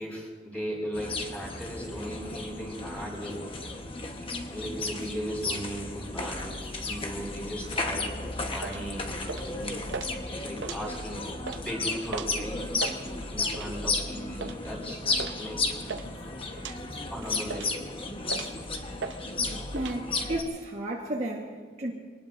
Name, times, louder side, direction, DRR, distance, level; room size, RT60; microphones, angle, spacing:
voice 1, 0.0-3.5 4.2-9.7 10.3-12.6 13.3-15.0 15.4-15.6 17.1-17.8, equal, 5° left, -4 dB, 5.4 m, -37 dB
sound 1, 0.9-20.4, left 3 dB, 25° left, 1.1 m, -34 dB
sound 2, 8.6-8.8 9.3-9.6 9.9-10.1 10.5-11.1 11.4-11.6 12.1-12.4 12.7-13.0 13.5-13.8 14.4-14.6 15.2-15.4 15.6-16.1 16.6-16.8 17.2-17.8 18.3-18.6 19.0-19.2 19.4-20.0, right 4 dB, 60° right, 0.7 m, -37 dB
voice 2, 19.7-21.9, right 1 dB, 35° right, -2 dB, 1.4 m, -33 dB
24.0 x 19.0 x 2.6 m, 1.5 s
head